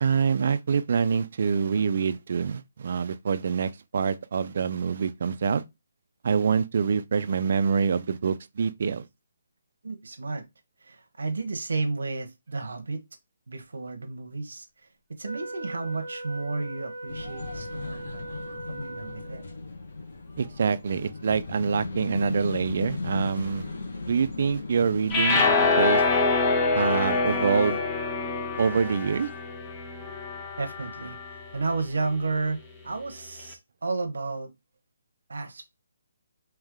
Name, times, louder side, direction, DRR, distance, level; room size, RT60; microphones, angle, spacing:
voice 1, 0.0-5.6 6.2-9.1 20.4-23.7 24.1-25.5 25.8-26.0 26.7-27.8 28.6-29.3, right 6 dB, 45° right, 0.4 m, -25 dB
voice 2, 9.8-10.4 10.8-13.0 13.5-14.9 15.2-19.4 30.6-32.6 32.8-34.5 35.3-35.7, right 3 dB, 90° right, 0.8 m, -32 dB
Wind instrument woodwind instrument, 15.2-19.6, right 2 dB, 40° left, 1.9 m, -39 dB
sound 1, 17.1-25.7, left 3 dB, 60° left, 1.2 m, -36 dB
sound 2, 25.1-31.4, left 3 dB, 15° left, 0.5 m, -25 dB
3.4 x 3.1 x 3.6 m
hypercardioid pair, 170°, 0 cm